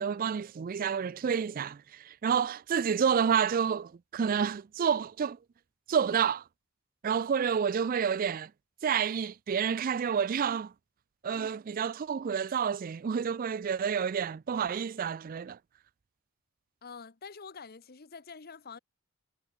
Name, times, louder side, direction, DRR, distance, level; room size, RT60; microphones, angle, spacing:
voice 1, 0.0-5.4 5.9-6.4 7.0-8.5 8.8-10.7 11.2-15.6, right 7 dB, 40° right, 0.3 m, -29 dB
voice 2, 16.8-18.8, left 5 dB, 45° left, 0.9 m, -46 dB
head